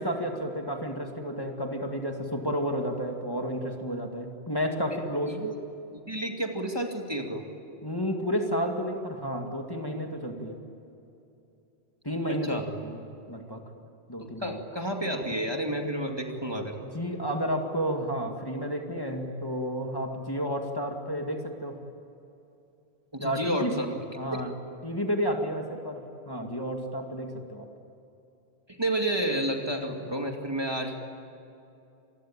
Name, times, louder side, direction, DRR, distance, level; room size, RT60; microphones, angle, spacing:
voice 1, 0.0-5.4 7.8-10.6 12.0-13.0 13.3-13.6 14.1-14.6 16.8-21.8 23.2-23.7 24.1-24.5 24.8-27.7, equal, 20° left, 2 dB, 2.3 m, -31 dB
voice 2, 5.3-5.6 6.1-7.4 12.3-12.7 14.4-16.7 23.1-24.0 24.3-24.4 28.7-30.9, right 1 dB, 25° right, 2 dB, 2.4 m, -30 dB
27.0 x 21.0 x 8.9 m, 2.8 s
omnidirectional pair, 1.1 m